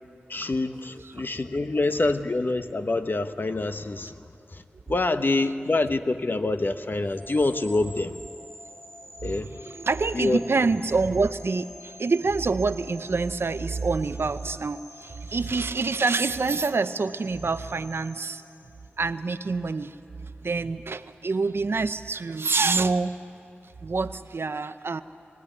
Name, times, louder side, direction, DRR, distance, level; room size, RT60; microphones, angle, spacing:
voice 1, 0.3-8.2 9.2-9.6 10.1-10.4, left 2 dB, 55° left, 9 dB, 1.0 m, -26 dB
sound 1, 7.0-19.2, equal, 10° left, 1.8 m, -47 dB
voice 2, 9.5-18.4 19.0-20.0 20.2-23.2 23.8-25.0, right 4 dB, 70° right, 12 dB, 0.7 m, -26 dB
23.0 x 16.0 x 9.6 m, 2.5 s
cardioid pair, 40°, 4 cm